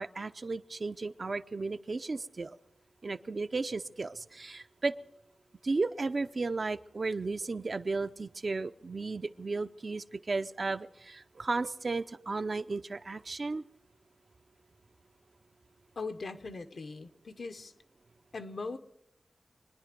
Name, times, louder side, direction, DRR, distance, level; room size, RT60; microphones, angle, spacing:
voice 1, 0.0-2.6 3.0-4.9 5.6-13.6, right 3 dB, 50° right, 10 dB, 0.6 m, -34 dB
voice 2, 16.0-17.7 18.3-18.8, left 3 dB, 65° left, 8 dB, 0.9 m, -40 dB
25.0 x 10.0 x 5.2 m, 0.87 s
wide cardioid pair, 85°, 0 cm